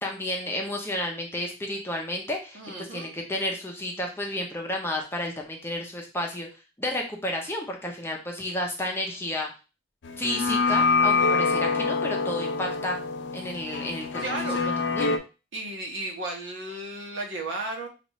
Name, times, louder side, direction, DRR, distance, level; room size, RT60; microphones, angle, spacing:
voice 1, 0.0-6.5 6.8-9.5 10.2-13.0 13.3-14.2 14.9-15.1, left 1 dB, 10° left, 1 dB, 0.6 m, -31 dB
voice 2, 2.5-3.1 14.2-14.6 15.5-17.9, right 2 dB, 75° right, 0 dB, 1.1 m, -34 dB
sound 1, 10.0-15.2, left 4 dB, 65° left, 0.5 m, -25 dB
5.1 x 2.5 x 3.1 m, 0.31 s
head